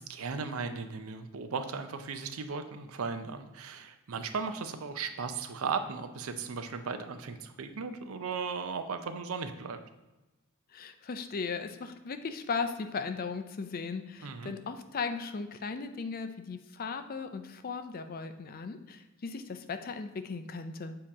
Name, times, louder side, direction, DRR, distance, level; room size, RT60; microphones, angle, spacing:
voice 1, 0.0-9.8 14.2-14.5, right 5 dB, 70° right, 8 dB, 0.5 m, -36 dB
voice 2, 10.7-21.0, left 5 dB, 45° left, 9 dB, 0.4 m, -37 dB
7.3 x 2.9 x 4.8 m, 1.0 s
head